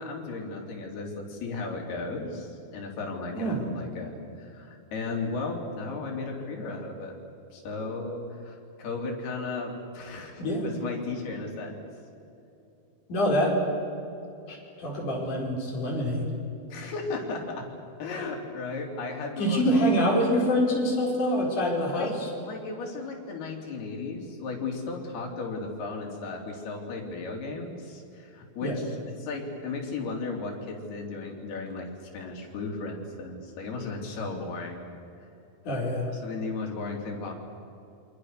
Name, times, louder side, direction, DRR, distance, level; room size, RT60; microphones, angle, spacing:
voice 1, 0.0-7.2 7.5-11.8 16.7-17.7 18.0-19.6 21.8-22.1 22.4-34.8 36.1-37.3, left 3 dB, 90° left, 1 dB, 5.4 m, -35 dB
voice 2, 3.3-3.6 10.4-10.6 13.1-13.6 14.5-16.3 19.4-22.1 28.6-28.8 35.6-36.1, equal, 55° left, -1 dB, 6.2 m, -25 dB
28.5 x 25.5 x 6.7 m, 2.8 s
omnidirectional pair, 4.4 m